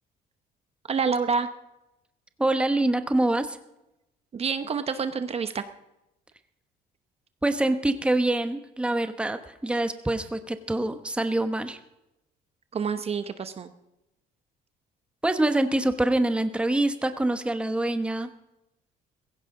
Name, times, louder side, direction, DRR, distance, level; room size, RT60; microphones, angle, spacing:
voice 1, 0.9-1.5 4.3-5.6 12.7-13.7, right 5 dB, 35° right, 10 dB, 0.9 m, -27 dB
voice 2, 2.4-3.6 7.4-11.8 15.2-18.3, right 1 dB, 5° right, 8 dB, 1.0 m, -25 dB
16.0 x 16.0 x 3.8 m, 0.92 s
cardioid pair, 110°, 17 cm